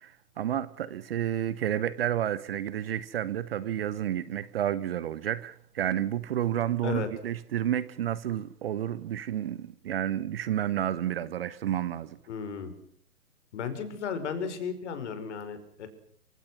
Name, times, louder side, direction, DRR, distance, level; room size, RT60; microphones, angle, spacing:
voice 1, 0.0-12.2, right 11 dB, 35° right, 1.0 m, -30 dB
voice 2, 12.3-12.7 13.5-15.9, left 6 dB, 45° left, 5.2 m, -34 dB
28.0 x 25.0 x 6.1 m
figure-of-eight pair, 120°, 48 cm